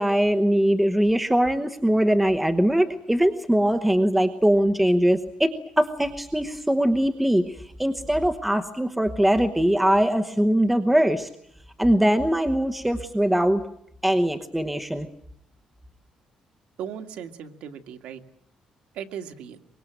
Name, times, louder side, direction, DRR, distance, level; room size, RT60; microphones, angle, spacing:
voice 1, 0.0-11.3 11.8-13.6 14.0-15.1, right 1 dB, 5° right, 6 dB, 1.0 m, -21 dB
voice 2, 16.8-18.2 18.9-19.6, right 8 dB, 80° right, 6 dB, 1.9 m, -37 dB
24.0 x 22.0 x 9.1 m, 0.72 s
cardioid pair, 160°, 2 cm